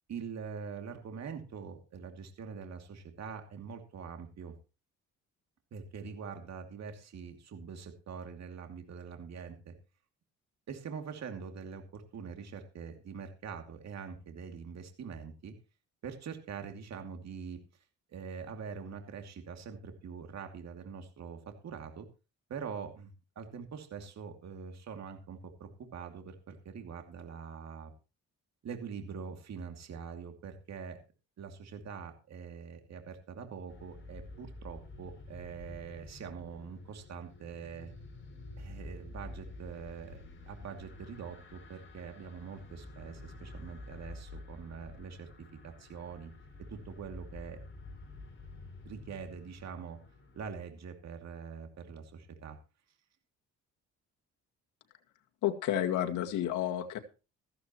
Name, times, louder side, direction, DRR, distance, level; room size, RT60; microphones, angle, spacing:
voice 1, 0.1-4.6 5.7-9.7 10.7-15.5 16.0-17.6 18.1-22.1 22.5-27.9 28.6-31.0 31.4-37.9 38.6-45.3 45.6-46.3 46.7-47.6 48.8-50.0 50.3-52.6, right 6 dB, 60° right, 5 dB, 2.7 m, -44 dB
sound 1, 33.7-50.6, left 2 dB, 40° left, 5.2 m, -49 dB
voice 2, 55.4-57.0, left 11 dB, 85° left, 4 dB, 2.1 m, -31 dB
14.5 x 14.5 x 3.1 m, 0.31 s
cardioid pair, 90°, 30 cm